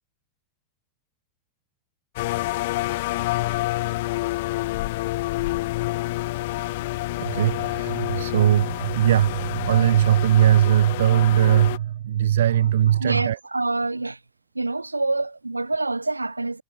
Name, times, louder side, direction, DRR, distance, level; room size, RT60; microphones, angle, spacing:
sound 1, 2.2-11.8, left 19 dB, 50° left, 0.7 m, -28 dB
voice 1, 6.4-6.7 7.2-13.4, right 11 dB, 60° right, 0.5 m, -20 dB
voice 2, 12.9-14.2 14.5-16.6, right 2 dB, 80° right, 3.3 m, -26 dB
figure-of-eight pair, 90°, 0 cm